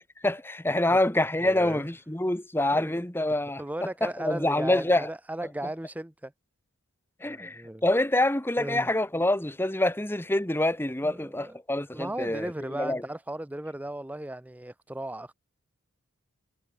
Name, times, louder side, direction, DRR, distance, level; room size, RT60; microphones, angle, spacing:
voice 1, 0.2-5.1 7.2-13.0, left 1 dB, 10° left, 1.1 m, -26 dB
voice 2, 1.4-1.9 2.7-6.3 7.2-7.8 8.6-8.9 11.0-11.6 11.9-15.3, right 1 dB, 5° right, 0.5 m, -36 dB
head